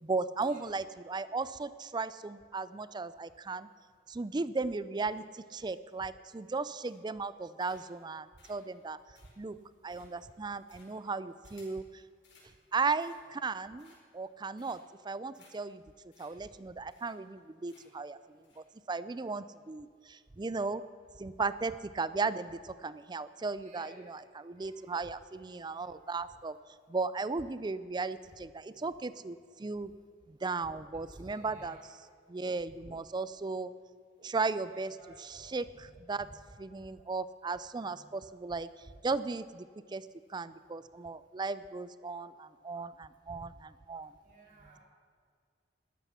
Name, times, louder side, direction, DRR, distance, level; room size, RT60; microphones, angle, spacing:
voice 1, 0.0-3.7 4.1-9.0 9.4-9.6 9.8-11.8 12.7-14.8 15.0-15.8 16.2-20.8 21.2-26.6 26.9-29.9 30.3-31.8 32.3-33.7 34.2-34.9 35.3-36.3 36.6-38.7 39.0-39.7 39.9-44.1, right 4 dB, 25° right, 15 dB, 0.4 m, -36 dB
sound 1, 6.8-7.2 7.6-8.0 8.4-11.8 12.2-12.5 12.9-13.4 13.8-14.2 14.6-15.0 15.3-15.5 15.8-15.9 16.1-16.3 16.6-16.7 16.9-17.4 17.7-18.0 18.4-18.6, left 4 dB, 85° left, 4.6 m, -63 dB
voice 2, 23.6-24.2 24.6-25.1 25.5-25.8 30.9-31.9 34.7-35.9 36.1-36.4 37.8-38.1 44.2-44.8, right 2 dB, 50° right, -2 dB, 3.5 m, -58 dB
13.0 x 12.0 x 5.8 m, 2.1 s
head